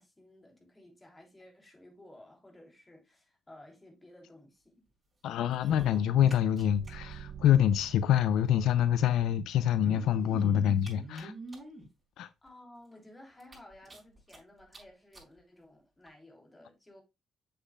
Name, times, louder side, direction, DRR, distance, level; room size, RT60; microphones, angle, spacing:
voice 1, 0.0-4.9 12.4-17.0, left 1 dB, 15° left, 3.2 m, -55 dB
voice 2, 5.2-11.3 12.2-12.3, left 10 dB, 80° left, 0.4 m, -26 dB
sound 1, 5.5-6.9 7.2-7.3 7.5-7.6 8.6-8.7 9.6-11.9 12.5-12.6 12.9-13.0 13.4-14.4 14.7-14.8 15.1-15.3 16.1-16.2, equal, 25° right, 4.9 m, -44 dB
sound 2, 6.6-9.7, right 8 dB, 65° right, 0.5 m, -48 dB
7.4 x 6.8 x 2.3 m
cardioid pair, 90°, 0 cm